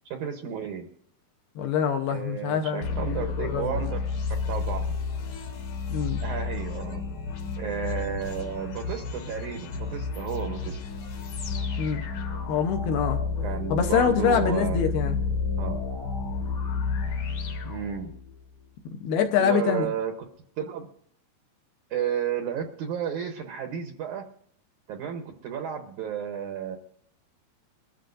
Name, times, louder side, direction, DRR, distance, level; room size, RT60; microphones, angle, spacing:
voice 1, 0.0-0.9 2.1-4.9 6.2-7.0 7.6-10.8 13.4-15.0 15.6-15.8 17.6-18.1 19.4-20.1 20.6-20.9 21.9-24.2 24.9-26.8, right 8 dB, 80° right, 5 dB, 1.8 m, -32 dB
voice 2, 1.6-3.7 5.9-6.2 11.8-12.0 12.5-13.2 13.7-15.2 19.0-19.9, left 7 dB, 75° left, 4 dB, 2.6 m, -25 dB
sound 1, 2.8-18.4, left 4 dB, 55° left, 2.6 m, -31 dB
22.5 x 14.0 x 2.6 m, 0.63 s
omnidirectional pair, 5.0 m